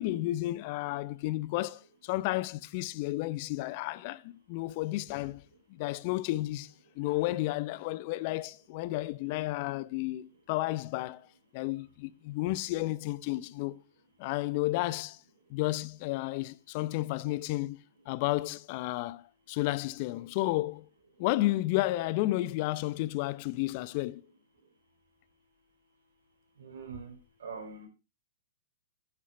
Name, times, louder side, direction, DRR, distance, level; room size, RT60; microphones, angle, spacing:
voice 1, 0.0-5.4 5.7-11.3 11.5-13.8 14.2-15.2 15.5-20.9 21.2-24.2, left 18 dB, 45° left, 0.7 m, -32 dB
voice 2, 26.6-27.9, right 5 dB, 70° right, 4.6 m, -43 dB
9.6 x 9.5 x 4.5 m
hypercardioid pair, 115°, 0 cm